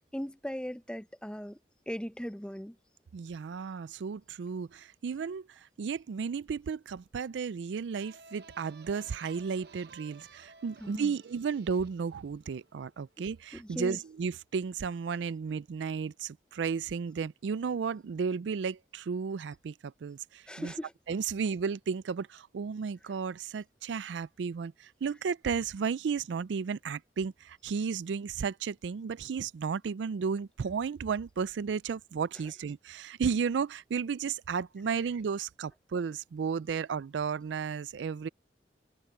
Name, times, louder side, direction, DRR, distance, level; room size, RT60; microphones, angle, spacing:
voice 1, 0.0-1.6 1.9-2.7 10.8-11.1 13.5-14.0 20.5-20.9, equal, 5° left, 0.6 m, -38 dB
voice 2, 3.1-20.7 21.1-38.3, right 6 dB, 85° right, 0.4 m, -33 dB
sound 1, 7.9-13.4, right 4 dB, 60° right, 1.0 m, -55 dB
head